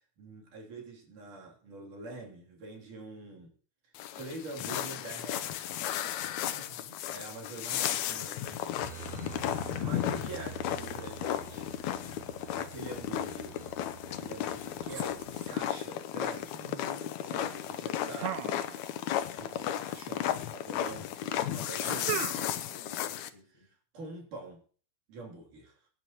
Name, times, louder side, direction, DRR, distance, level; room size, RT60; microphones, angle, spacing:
voice 1, 0.2-3.5 3.8-5.8 7.1-9.3 9.6-11.7 12.6-13.6 14.1-16.6 17.2-18.4 19.3-22.2 23.5-24.6 25.1-25.9, right 2 dB, 55° right, -1 dB, 4.6 m, -45 dB
sound 1, 3.9-23.3, left 11 dB, 85° left, 1.6 m, -34 dB
voice 2, 6.5-7.0 16.5-17.7 21.9-22.3 22.6-23.7, right 1 dB, 5° left, -1 dB, 6.2 m, -52 dB
Aircraft, 8.8-15.6, right 7 dB, 35° right, 4.9 m, -47 dB
sound 2, 18.2-19.2 19.4-20.2 21.8-22.7, right 11 dB, 75° right, 1.9 m, -37 dB
23.5 x 10.5 x 3.0 m, 0.43 s
omnidirectional pair, 4.3 m